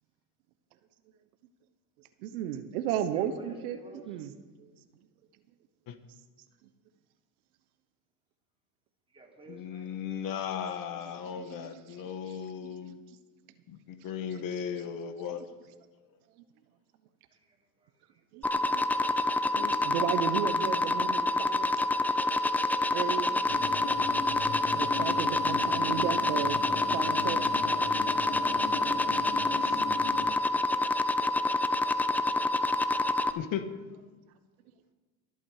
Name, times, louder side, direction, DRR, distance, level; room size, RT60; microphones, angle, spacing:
voice 1, 2.2-3.8 4.1-4.3 11.4-12.0 12.6-12.7 18.3-18.8 19.5-21.7 22.9-23.4 24.7-26.6 26.9-27.4, right 10 dB, 75° right, 10 dB, 1.1 m, -34 dB
voice 2, 3.1-4.2 9.1-9.9 17.3-18.2 29.2-29.5, right 1 dB, 10° right, -1 dB, 3.4 m, -53 dB
voice 3, 9.5-13.0 13.7-15.4 19.5-19.7 29.6-29.8 33.3-33.6, left 8 dB, 50° left, 9 dB, 1.3 m, -36 dB
sound 1, 18.4-33.3, left 2 dB, 5° left, 0.5 m, -27 dB
sound 2, 23.5-30.3, left 6 dB, 70° left, 2.5 m, -38 dB
22.5 x 8.5 x 4.9 m, 1.3 s
supercardioid pair, 105°, 44 cm